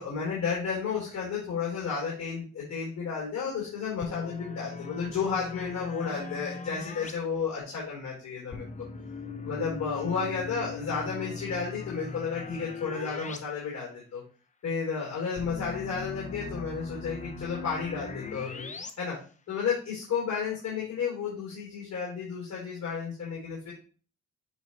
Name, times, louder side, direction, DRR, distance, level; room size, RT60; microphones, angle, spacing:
voice 1, 0.0-8.9 9.4-14.2 14.6-18.7 19.0-19.2 19.5-23.7, left 6 dB, 60° left, -4 dB, 3.2 m, -32 dB
sound 1, 4.0-7.1 8.5-13.4 13.7-13.8 15.4-18.9, left 4 dB, 25° left, 0.7 m, -40 dB
8.5 x 2.9 x 4.2 m, 0.38 s
cardioid pair, 90°, 30 cm